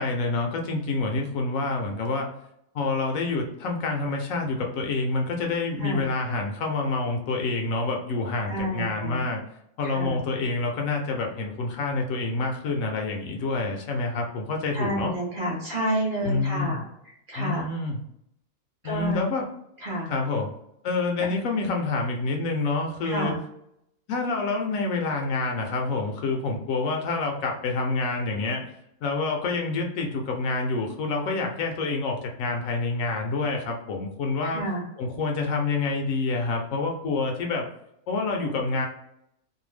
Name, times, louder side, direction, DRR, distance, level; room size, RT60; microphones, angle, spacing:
voice 1, 0.0-2.3 2.7-9.4 9.8-15.1 16.3-16.8 17.4-18.0 18.8-19.5 20.1-20.5 20.8-23.3 24.1-28.7 29.0-34.6 35.0-37.7 38.1-38.9, left 3 dB, 70° left, 2 dB, 0.9 m, -27 dB
voice 2, 8.5-9.2 9.8-10.3 14.7-16.8 17.1-17.6 18.8-19.2 19.8-20.1 23.0-23.4 34.5-34.8, right 1 dB, 45° right, -4 dB, 0.8 m, -29 dB
2.6 x 2.2 x 3.1 m, 0.77 s
omnidirectional pair, 1.5 m